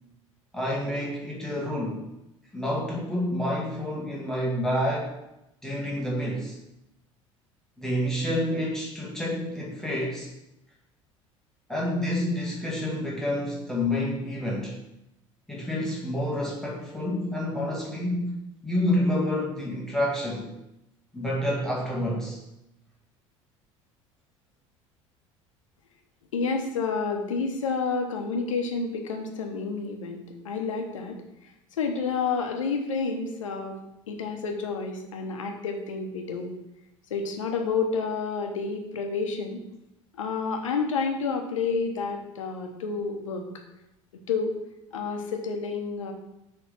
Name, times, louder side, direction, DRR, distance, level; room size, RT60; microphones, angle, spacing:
voice 1, 0.5-2.0 2.5-5.1 5.6-6.6 7.8-10.3 11.7-14.7 15.5-18.3 18.6-20.5 21.1-22.4, left 1 dB, 5° left, -4 dB, 1.7 m, -28 dB
voice 2, 26.3-31.2 31.8-33.8 34.1-36.5 37.1-39.6 40.2-43.5 44.3-44.5 44.9-46.1, left 4 dB, 75° left, 4 dB, 1.1 m, -29 dB
6.6 x 3.6 x 5.8 m, 0.89 s
figure-of-eight pair, 65°, 17 cm